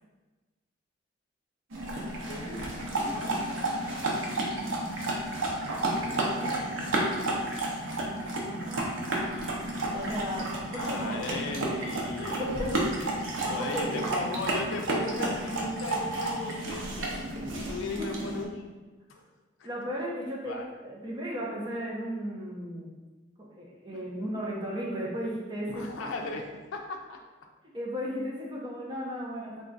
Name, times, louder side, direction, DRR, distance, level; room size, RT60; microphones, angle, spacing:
sound 1, 1.7-18.4, right 1 dB, 85° right, 0.7 m, -31 dB
voice 1, 2.3-4.8 5.4-7.5 10.7-12.9 13.5-17.2 17.5-18.7 19.1-19.2 19.6-19.7 20.5-20.7 23.9-24.0 25.7-27.2, left 2 dB, 85° left, 1 dB, 0.4 m, -38 dB
voice 2, 8.4-8.9 9.9-11.2 12.2-12.9 13.4-14.1 17.5-17.6 18.0-18.1 19.6-22.9 23.4-25.9 27.7-29.6, equal, 20° right, -5 dB, 0.7 m, -35 dB
3.7 x 2.3 x 3.9 m, 1.2 s
head